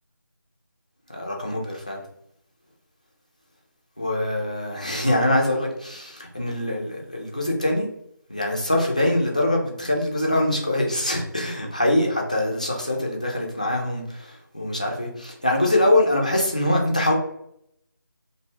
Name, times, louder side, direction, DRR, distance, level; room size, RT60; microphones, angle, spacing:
voice 1, 1.1-2.0 4.0-7.9 8.3-17.1, left 1 dB, 20° left, -1 dB, 0.3 m, -23 dB
2.5 x 2.2 x 3.0 m, 0.74 s
figure-of-eight pair, 165°, 11 cm